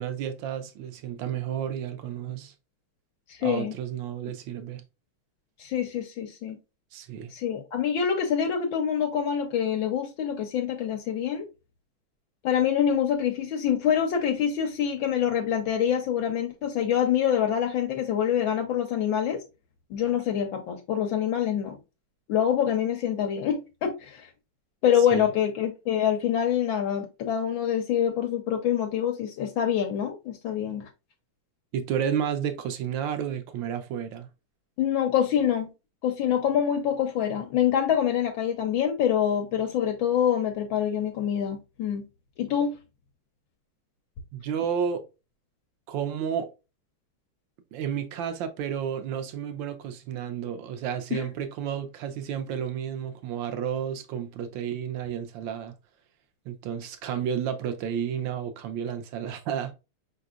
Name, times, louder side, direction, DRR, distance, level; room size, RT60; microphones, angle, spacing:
voice 1, 0.0-2.5 3.4-4.8 6.9-7.3 25.1-25.3 31.7-34.3 44.3-45.0 45.9-46.5 47.7-55.7 56.4-59.7, right 8 dB, 70° right, 1.4 m, -31 dB
voice 2, 3.3-3.7 5.6-6.6 7.3-11.5 12.4-19.4 19.9-21.8 22.3-24.3 24.8-30.9 34.8-35.7 36.0-42.1 42.4-42.8 51.1-51.2, left 9 dB, 70° left, 1.4 m, -26 dB
5.1 x 4.0 x 2.3 m
omnidirectional pair, 2.3 m